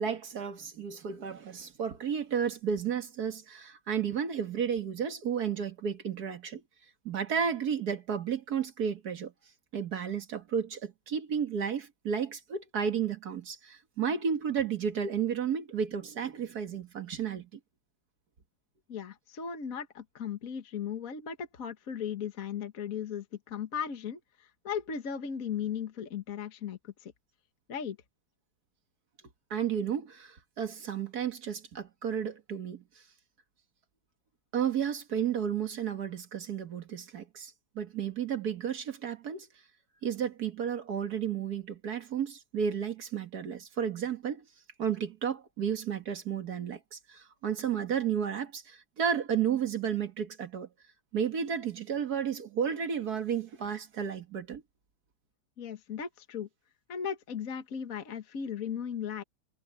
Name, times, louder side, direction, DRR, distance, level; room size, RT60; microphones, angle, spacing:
voice 1, 0.0-6.6 7.1-9.3 9.7-17.5 29.5-32.8 34.5-39.5 40.0-44.4 44.8-50.7 51.1-54.6, right 7 dB, 50° right, 2.0 m, -32 dB
voice 2, 18.9-27.1 27.7-28.0 55.6-56.5 56.9-59.2, left 7 dB, 45° left, 1.6 m, -37 dB
omnidirectional pair, 2.2 m